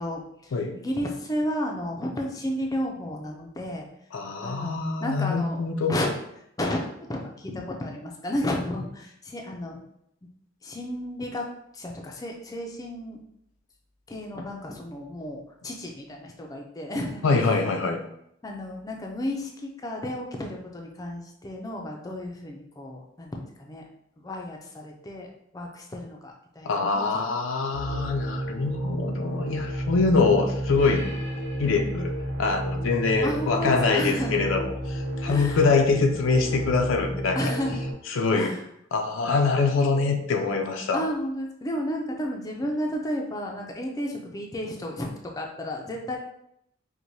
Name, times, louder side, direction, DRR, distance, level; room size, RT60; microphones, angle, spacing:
voice 1, 0.0-3.9 4.4-6.1 6.6-9.8 10.6-11.5 11.7-13.2 14.1-17.7 18.4-23.8 24.2-27.3 33.2-34.4 35.3-35.6 37.3-37.8 38.3-38.6 40.9-46.2, left 1 dB, 20° left, 1 dB, 0.4 m, -32 dB
voice 2, 4.1-5.9 17.2-18.0 26.7-31.1 31.6-32.1 32.4-37.5 38.1-38.5 38.9-41.0, left 4 dB, 80° left, 4 dB, 0.4 m, -24 dB
sound 1, 27.7-37.9, equal, 65° right, 0.9 m, -31 dB
4.6 x 2.1 x 2.6 m, 0.76 s
head